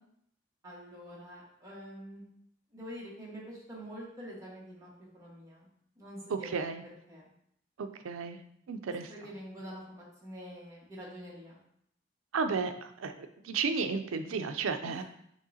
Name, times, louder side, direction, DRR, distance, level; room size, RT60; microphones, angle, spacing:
voice 1, 0.6-2.2 2.7-4.9 5.1-5.7 6.0-6.5 7.1-7.3 9.1-11.5 14.8-15.0, equal, 15° right, -6 dB, 1.3 m, -46 dB
voice 2, 6.3-6.8 7.8-8.4 8.7-9.1 12.3-15.0, right 5 dB, 85° right, 8 dB, 0.4 m, -33 dB
6.3 x 3.1 x 2.7 m, 0.72 s
head